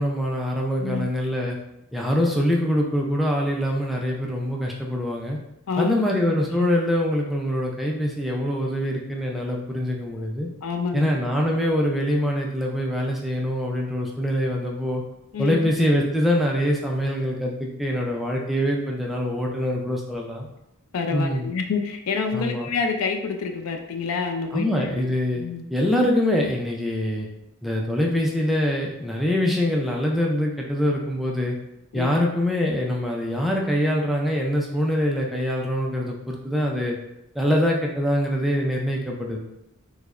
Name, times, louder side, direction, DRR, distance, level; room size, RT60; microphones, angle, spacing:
voice 1, 0.0-1.6 1.9-5.4 5.8-10.5 10.9-15.0 15.4-20.5 21.1-21.5 22.3-22.7 24.5-25.4 25.7-27.3 27.6-31.6 31.9-37.0 37.3-39.4, equal, ahead, -2 dB, 0.3 m, -24 dB
voice 2, 0.8-1.1 5.7-6.3 6.5-6.7 10.6-11.1 15.3-15.7 20.9-25.1 25.3-25.6 31.9-32.3, left 5 dB, 75° left, 4 dB, 0.4 m, -28 dB
4.7 x 2.1 x 2.4 m, 0.86 s
head